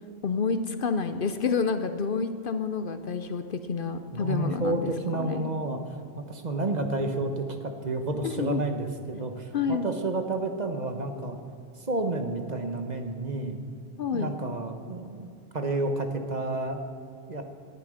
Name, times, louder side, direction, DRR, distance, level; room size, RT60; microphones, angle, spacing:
voice 1, 0.2-5.5 8.2-8.6 9.5-9.9 14.0-14.4, left 5 dB, 55° left, 9 dB, 0.8 m, -29 dB
voice 2, 4.1-11.4 11.8-13.6 14.1-16.8 17.3-17.4, right 2 dB, 40° right, 6 dB, 1.2 m, -30 dB
18.0 x 11.5 x 5.0 m, 2.4 s
omnidirectional pair, 1.1 m